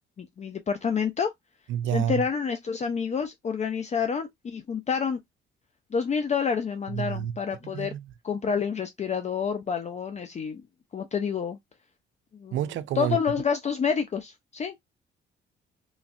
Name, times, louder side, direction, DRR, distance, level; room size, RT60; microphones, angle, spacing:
voice 1, 0.2-1.3 1.9-5.2 5.9-7.9 8.2-10.6 10.9-11.6 12.4-12.6 12.9-14.7, left 6 dB, 35° left, 0.5 m, -28 dB
voice 2, 1.7-2.2 6.9-7.3 7.7-8.0 12.5-13.2, right 10 dB, 75° right, 0.4 m, -28 dB
3.1 x 2.4 x 2.5 m
cardioid pair, 90°, 20 cm